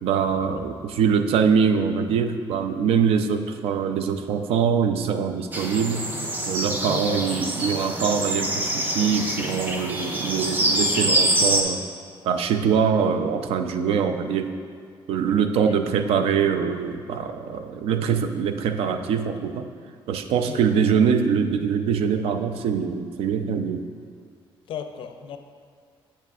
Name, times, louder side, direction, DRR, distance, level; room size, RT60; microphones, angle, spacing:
voice 1, 0.0-6.1 6.5-11.8 12.2-14.5 15.1-19.7 20.1-23.9, right 6 dB, 85° right, 8 dB, 0.4 m, -23 dB
sound 1, 5.5-11.6, right 1 dB, 20° right, 0.5 m, -25 dB
voice 2, 6.8-7.4 20.4-20.6 24.7-25.4, left 8 dB, 65° left, 7 dB, 0.4 m, -34 dB
7.6 x 7.3 x 2.4 m, 2.1 s
cardioid pair, 170°, 10 cm